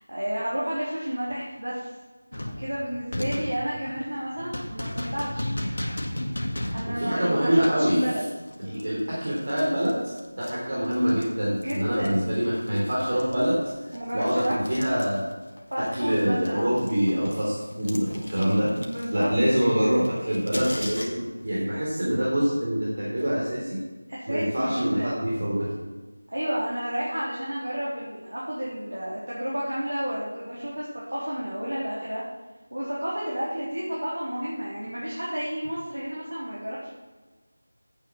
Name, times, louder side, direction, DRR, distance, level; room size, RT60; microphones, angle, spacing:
voice 1, 0.0-1.9 2.3-5.5 6.7-8.2 8.6-8.8 11.5-12.3 13.9-14.5 15.7-16.8 18.7-19.3 23.0-23.1 24.1-25.2 26.3-30.9 31.1-32.2 32.7-36.9, equal, 80° right, -7 dB, 3.7 m, -31 dB
sound 1, 2.3-11.3 11.6-15.6 15.9-21.4, left 1 dB, 65° left, 1.9 m, -36 dB
voice 2, 6.9-8.0 8.6-13.6 13.8-15.2 15.8-18.7 19.1-23.8 24.3-25.7, equal, 50° right, -6 dB, 3.3 m, -25 dB
9.7 x 8.4 x 6.1 m, 1.3 s
figure-of-eight pair, 170°, 0 cm